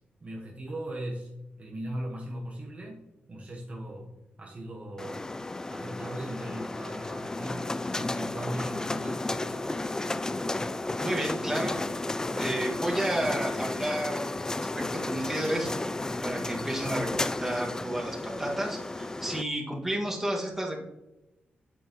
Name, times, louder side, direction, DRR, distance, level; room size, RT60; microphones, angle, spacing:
voice 1, 0.2-3.0 3.3-4.1 4.4-5.3 5.7-9.9, right 1 dB, 35° right, -2 dB, 1.2 m, -39 dB
sound 1, 5.0-19.4, left 2 dB, 15° left, 0.3 m, -33 dB
voice 2, 11.0-11.8 12.4-14.2 14.6-15.7 16.2-20.8, right 1 dB, 10° right, -2 dB, 1.9 m, -31 dB
9.2 x 8.7 x 3.0 m, 0.96 s
wide cardioid pair, 145°, 4 cm